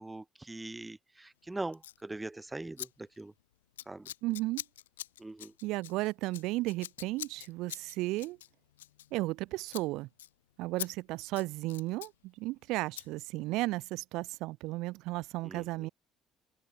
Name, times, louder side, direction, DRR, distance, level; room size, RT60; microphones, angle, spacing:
voice 1, 0.0-3.3 3.9-4.1 5.2-5.5 15.4-15.9, right 2 dB, 15° right, 2.2 m, -42 dB
Scissors, 1.7-2.0 2.8-2.9 3.1-3.4 3.8-9.4 9.7-9.9 10.2-10.3 10.8-10.9 11.2-12.1 13.0-13.1, left 13 dB, 75° left, 2.8 m, -44 dB
voice 2, 4.2-4.6 5.6-8.4 9.1-10.1 10.6-15.9, right 20 dB, 60° right, 2.4 m, -34 dB
figure-of-eight pair, 50°, 0 cm